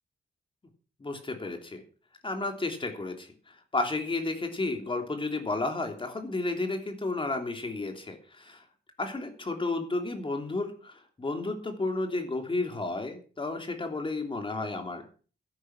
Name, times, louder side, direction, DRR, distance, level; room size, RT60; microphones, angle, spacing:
voice 1, 1.0-1.8 2.2-3.3 3.7-8.6 9.0-15.0, left 2 dB, 30° left, 5 dB, 3.2 m, -32 dB
13.0 x 11.0 x 6.0 m, 0.39 s
wide cardioid pair, 115°, 18 cm